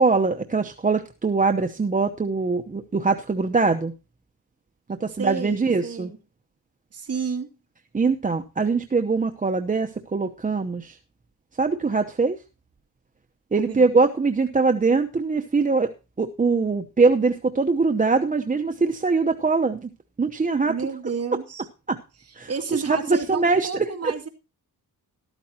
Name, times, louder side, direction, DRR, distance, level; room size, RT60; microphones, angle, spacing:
voice 1, 0.0-3.9 4.9-6.1 7.9-11.0 11.6-12.4 13.5-19.9 20.2-20.7 21.9-22.0 22.4-24.1, right 4 dB, 20° right, 6 dB, 0.8 m, -22 dB
voice 2, 5.1-6.2 6.9-7.5 13.6-13.9 20.7-21.6 22.5-24.3, right 5 dB, 40° right, 4 dB, 2.4 m, -31 dB
13.5 x 13.0 x 2.8 m, 0.30 s
wide cardioid pair, 145°, 37 cm